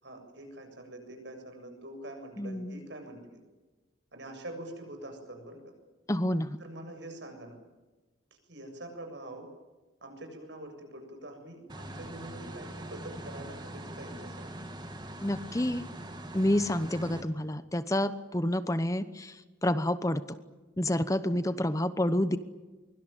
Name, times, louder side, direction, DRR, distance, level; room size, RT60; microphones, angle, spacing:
voice 1, 0.0-3.4 4.1-5.6 6.6-7.6 8.5-9.5 10.0-14.6 16.8-17.2 21.3-21.6, right 1 dB, 65° right, 5 dB, 7.4 m, -45 dB
voice 2, 2.4-2.8 6.1-6.6 15.2-15.9 16.3-20.2 20.8-22.4, left 1 dB, 15° left, 12 dB, 1.0 m, -29 dB
sound 1, 11.7-17.2, right 1 dB, 20° right, 2.3 m, -42 dB
24.0 x 23.5 x 9.1 m, 1.2 s
head